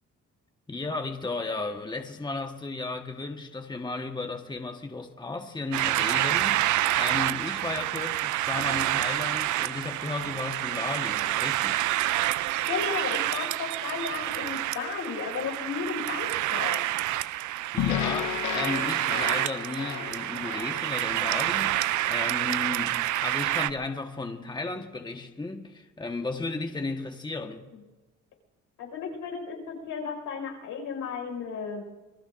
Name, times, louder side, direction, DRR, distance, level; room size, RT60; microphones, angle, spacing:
voice 1, 0.7-11.8 17.7-27.7, left 3 dB, 15° left, 1.4 m, -34 dB
sound 1, 5.7-23.7, right 15 dB, 80° right, 0.5 m, -28 dB
voice 2, 12.7-16.8 28.8-31.9, left 5 dB, 85° left, 5.3 m, -34 dB
sound 2, 17.8-22.1, left 12 dB, 65° left, 0.7 m, -33 dB
27.0 x 20.5 x 2.6 m
cardioid pair, 90°, 30 cm